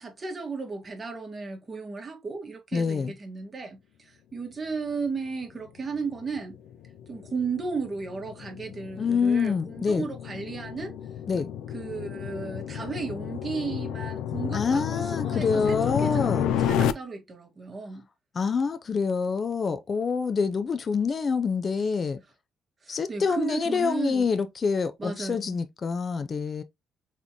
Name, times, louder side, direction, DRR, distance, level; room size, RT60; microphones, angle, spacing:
voice 1, 0.0-6.6 7.1-10.9 11.7-18.1 22.8-24.3 25.0-25.6, right 4 dB, 35° right, 1.8 m, -35 dB
voice 2, 2.7-3.1 9.0-10.1 11.3-11.5 14.5-16.5 18.3-22.2 22.9-26.6, left 5 dB, 40° left, 0.6 m, -26 dB
sound 1, 5.8-16.9, left 9 dB, 90° left, 0.4 m, -31 dB
4.1 x 3.6 x 2.9 m
cardioid pair, 90°, 0 cm